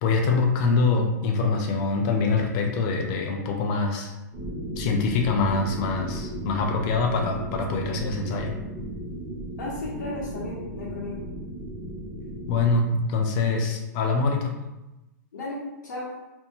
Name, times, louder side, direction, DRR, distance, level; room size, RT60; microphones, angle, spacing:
voice 1, 0.0-4.1 4.8-8.5 12.5-14.5, left 4 dB, 30° left, 3 dB, 0.4 m, -24 dB
sound 1, 4.3-12.8, right 1 dB, 25° right, 0.6 m, -35 dB
voice 2, 9.6-11.3 15.3-16.1, left 2 dB, 80° left, -7 dB, 0.8 m, -34 dB
2.6 x 2.1 x 2.9 m, 1.0 s
hypercardioid pair, 155°, 10 cm